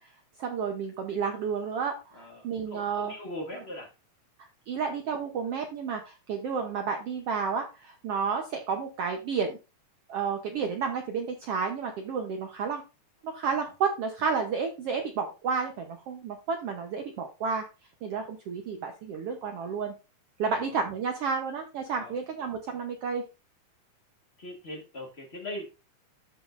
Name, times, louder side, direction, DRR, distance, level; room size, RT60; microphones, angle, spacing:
voice 1, 0.4-3.1 3.5-3.6 4.4-9.6 10.1-12.8 13.2-17.7 18.0-19.9 20.4-23.2, right 5 dB, 75° right, 4 dB, 1.4 m, -31 dB
voice 2, 2.1-3.9 20.6-20.7 21.9-22.1 24.4-25.7, left 1 dB, 45° left, 1 dB, 0.8 m, -40 dB
13.5 x 5.2 x 2.5 m, 0.29 s
omnidirectional pair, 3.7 m